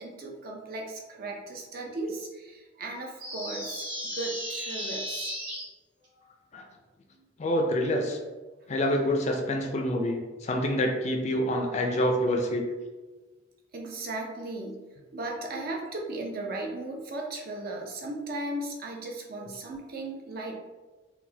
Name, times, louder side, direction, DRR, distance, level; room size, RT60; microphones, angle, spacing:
voice 1, 0.0-5.3 6.2-6.3 7.1-7.3 8.8-9.0 13.7-14.8 15.1-20.5, right 2 dB, 50° right, 0 dB, 0.5 m, -36 dB
sound 1, 3.2-5.6, equal, 85° right, 1.4 m, -35 dB
voice 2, 7.4-8.2 8.7-12.6, equal, 35° left, 3 dB, 0.4 m, -27 dB
3.9 x 2.2 x 2.7 m, 1.3 s
head